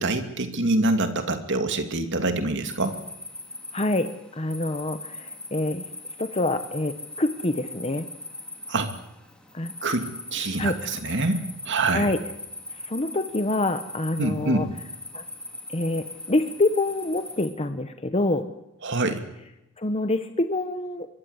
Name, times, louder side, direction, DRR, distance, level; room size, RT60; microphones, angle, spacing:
voice 1, 0.0-3.0 8.7-8.9 9.8-12.1 14.2-14.7 18.8-19.2, right 2 dB, 55° right, 7 dB, 2.6 m, -25 dB
sound 1, 2.6-17.5, left 2 dB, 5° left, 3.6 m, -40 dB
voice 2, 3.7-5.8 6.2-8.1 9.5-9.7 10.6-10.8 11.9-12.2 12.8-14.7 15.1-15.2 15.7-18.5 19.8-21.1, left 2 dB, 30° left, 9 dB, 1.1 m, -26 dB
24.0 x 22.5 x 8.2 m, 0.90 s
head